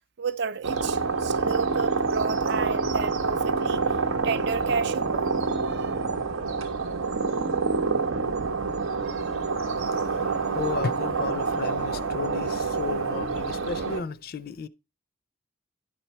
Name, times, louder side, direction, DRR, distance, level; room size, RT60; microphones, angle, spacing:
voice 1, 0.2-4.0 4.2-6.1 9.0-9.5, right 5 dB, 55° right, 0.4 m, -32 dB
sound 1, 0.6-14.0, right 4 dB, 90° right, 0.9 m, -27 dB
voice 2, 9.6-14.7, left 5 dB, 45° left, 0.4 m, -34 dB
11.0 x 4.5 x 4.2 m
head